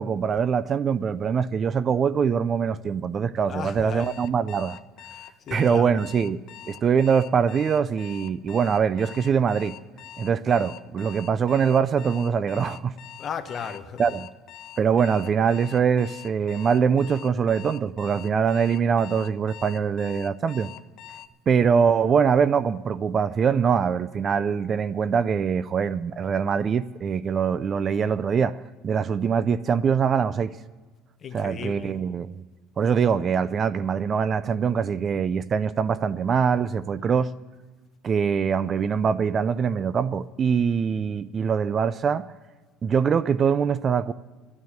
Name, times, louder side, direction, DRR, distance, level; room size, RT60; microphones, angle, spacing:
voice 1, 0.0-4.8 5.5-6.4 6.7-9.7 10.2-12.9 14.0-14.3 14.8-20.7 21.5-30.5 31.3-32.4 32.8-37.3 38.0-42.3 42.8-44.1, right 6 dB, 35° right, 0.4 m, -23 dB
voice 2, 3.5-4.1 5.1-6.0 13.2-14.1 31.2-32.0, left 6 dB, 35° left, 1.1 m, -35 dB
Alarm, 4.0-21.3, left 12 dB, 60° left, 0.7 m, -44 dB
13.0 x 9.4 x 8.9 m
cardioid pair, 120°, 0 cm